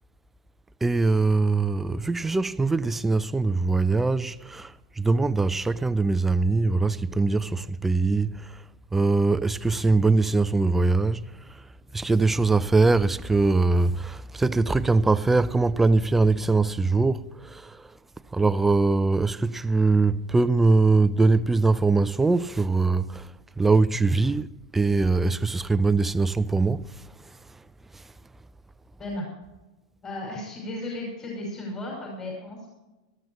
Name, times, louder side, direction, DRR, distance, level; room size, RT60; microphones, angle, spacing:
voice 1, 0.8-4.7 5.0-8.5 8.9-11.2 11.9-17.8 18.3-23.3 23.6-24.5 24.7-26.9, right 3 dB, 10° right, 0.5 m, -22 dB
voice 2, 30.0-32.7, left 1 dB, 25° left, 5.6 m, -34 dB
19.0 x 13.5 x 3.1 m
hypercardioid pair, 110°, 2 cm